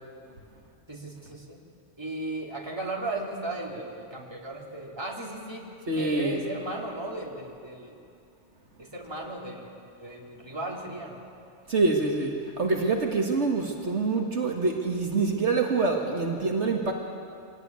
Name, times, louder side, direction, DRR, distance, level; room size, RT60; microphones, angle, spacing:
voice 1, 0.9-1.6 2.0-5.6 5.9-8.0 8.8-9.7 10.0-11.3, right 2 dB, 20° right, -2 dB, 3.0 m, -36 dB
voice 2, 5.9-6.4 11.7-16.9, right 3 dB, 65° right, 1 dB, 2.1 m, -26 dB
25.5 x 18.0 x 9.5 m, 2.5 s
omnidirectional pair, 1.3 m